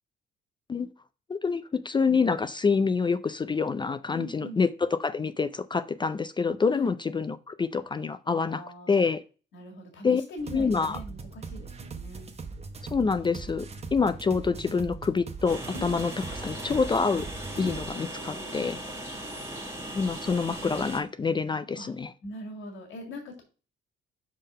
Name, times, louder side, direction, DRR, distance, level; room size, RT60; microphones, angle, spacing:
voice 1, 1.3-8.6 8.9-9.2 10.0-10.2 10.5-11.0 12.8-16.1 16.4-17.3 17.6-18.8 19.9-22.1, left 5 dB, 25° left, 0.4 m, -27 dB
voice 2, 4.1-4.6 6.6-6.9 8.3-9.0 9.5-12.4 15.7-16.0 17.6-17.8 18.1-18.7 21.8-21.9 22.2-23.4, left 1 dB, 75° left, 2.0 m, -42 dB
sound 1, 10.4-17.9, right 4 dB, 30° right, 0.9 m, -40 dB
Train, 15.5-21.0, right 1 dB, 15° right, 1.6 m, -38 dB
5.4 x 3.7 x 5.4 m
cardioid pair, 90°, 20 cm